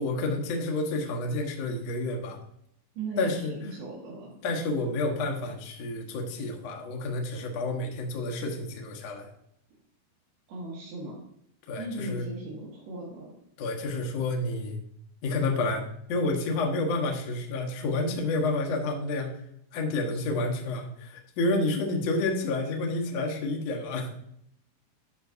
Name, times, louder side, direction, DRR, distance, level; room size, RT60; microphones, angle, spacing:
voice 1, 0.0-2.4 3.2-3.5 4.4-9.3 11.7-12.3 13.6-14.8 15.2-15.8 16.1-19.3 19.7-24.1, left 2 dB, 65° left, 1 dB, 1.7 m, -29 dB
voice 2, 3.0-4.3 10.5-11.2 11.8-13.3 20.1-20.2, right 2 dB, 75° right, -6 dB, 3.5 m, -37 dB
11.0 x 5.9 x 2.6 m, 0.70 s
omnidirectional pair, 4.6 m